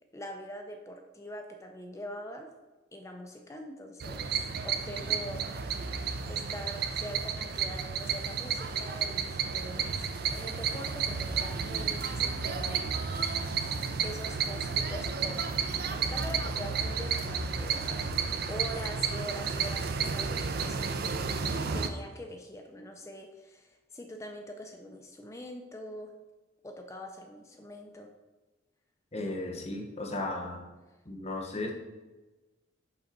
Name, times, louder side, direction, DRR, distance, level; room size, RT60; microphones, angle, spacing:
voice 1, 0.1-2.5 2.9-4.3 4.6-5.7 6.3-12.8 14.0-21.0 21.7-26.1 26.6-28.1, equal, 15° left, 4 dB, 0.4 m, -43 dB
sound 1, 4.0-21.9, right 6 dB, 50° right, 0.4 m, -32 dB
voice 2, 29.1-30.6 31.1-31.7, left 2 dB, 30° left, 2 dB, 0.9 m, -35 dB
5.8 x 3.8 x 5.3 m, 1.2 s
head